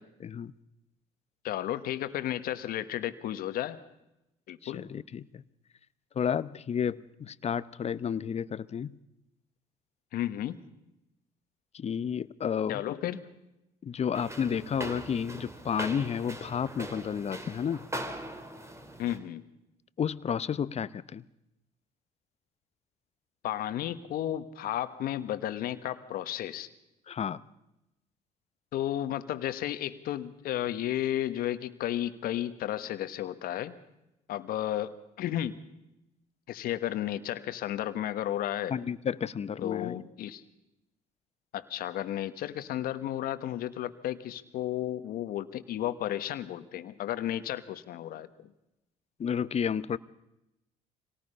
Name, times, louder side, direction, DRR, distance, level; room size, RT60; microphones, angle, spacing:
voice 1, 0.2-0.5 4.6-5.4 6.2-9.0 11.7-12.8 13.8-17.9 20.0-21.2 27.1-27.4 38.7-39.9 49.2-50.0, left 7 dB, 40° left, 17 dB, 0.8 m, -31 dB
voice 2, 1.4-3.8 4.5-4.8 10.1-10.6 12.7-13.2 19.0-19.4 23.4-26.7 28.7-33.8 34.3-35.6 36.5-38.7 39.6-40.4 41.5-48.5, left 12 dB, 70° left, 12 dB, 1.3 m, -33 dB
sound 1, 14.1-19.2, right 1 dB, 15° right, 3.2 m, -40 dB
25.5 x 18.5 x 5.6 m, 0.89 s
supercardioid pair, 65°, 16 cm